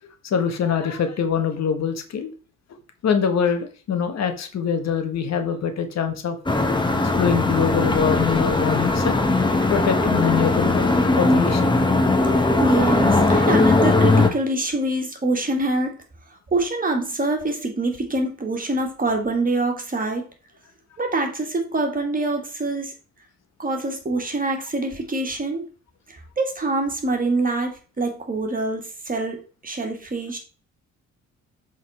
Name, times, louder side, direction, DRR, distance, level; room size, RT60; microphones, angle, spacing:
voice 1, 0.2-2.3 3.0-6.4 7.0-9.2 9.7-11.9 12.5-12.6, left 7 dB, 60° left, 7 dB, 1.3 m, -24 dB
sound 1, 6.5-14.3, left 2 dB, 15° left, 1.2 m, -19 dB
voice 2, 12.3-16.0 16.5-20.3 21.0-22.9 23.6-25.6 26.4-30.4, right 2 dB, 30° right, 3 dB, 2.0 m, -25 dB
7.4 x 4.0 x 4.2 m, 0.37 s
cardioid pair, 90°, 30 cm